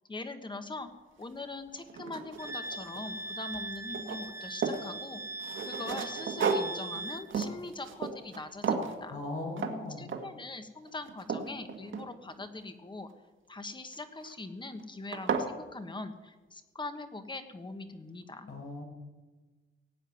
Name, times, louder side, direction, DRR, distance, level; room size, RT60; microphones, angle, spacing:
voice 1, 0.1-0.9 1.2-5.2 5.6-9.2 9.9-13.1 13.5-18.5, left 2 dB, 20° left, 8 dB, 1.3 m, -42 dB
sound 1, 1.2-1.3 1.8-3.2 3.5-4.9 5.4-8.4 8.6-9.0 9.6-9.8 10.1-10.4 10.9-12.4 13.9-14.3 14.8-14.9 15.1-15.5, right 5 dB, 65° right, 1.7 m, -34 dB
Wind instrument woodwind instrument, 2.4-7.3, right 2 dB, 15° right, 0.7 m, -40 dB
voice 2, 9.1-10.1 18.5-18.8, left 2 dB, 90° left, 0 dB, 5.7 m, -38 dB
17.5 x 7.5 x 9.4 m, 1.2 s
wide cardioid pair, 150°, 21 cm